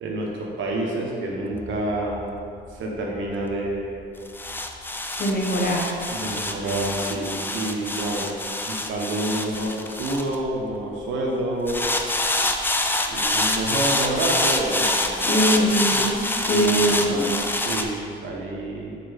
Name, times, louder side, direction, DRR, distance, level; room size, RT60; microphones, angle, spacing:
voice 1, 0.0-2.3 2.7-4.1 6.1-8.3 8.7-11.8 13.1-15.7 16.4-19.0, right 1 dB, 75° right, -2 dB, 1.2 m, -28 dB
sound 1, 1.5-11.0 11.7-17.8, left 2 dB, 10° left, 0.4 m, -26 dB
voice 2, 5.2-5.8 15.2-16.2 16.5-17.4, right 1 dB, 50° left, -2 dB, 1.2 m, -22 dB
4.6 x 4.3 x 5.2 m, 2.4 s
cardioid pair, 90°, 20 cm